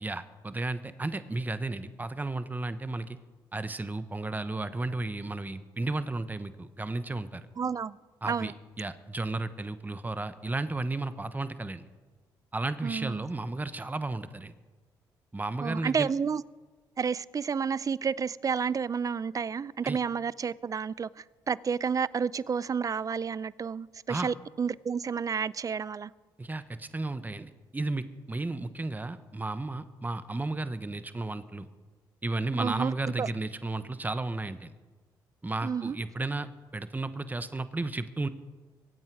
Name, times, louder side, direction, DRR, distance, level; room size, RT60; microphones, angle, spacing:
voice 1, 0.0-3.2 3.5-7.4 8.2-11.8 12.5-14.5 15.3-16.1 19.8-20.0 24.1-24.3 26.4-31.7 32.2-34.7 35.4-36.5 36.7-38.3, right 2 dB, 20° right, 1.0 m, -33 dB
voice 2, 7.6-8.0 8.2-8.5 12.8-13.2 15.6-16.4 17.0-26.1 32.6-32.9 33.2-33.3 35.6-36.0, right 6 dB, 40° right, 0.5 m, -30 dB
23.0 x 8.8 x 4.7 m
supercardioid pair, 65°, 9 cm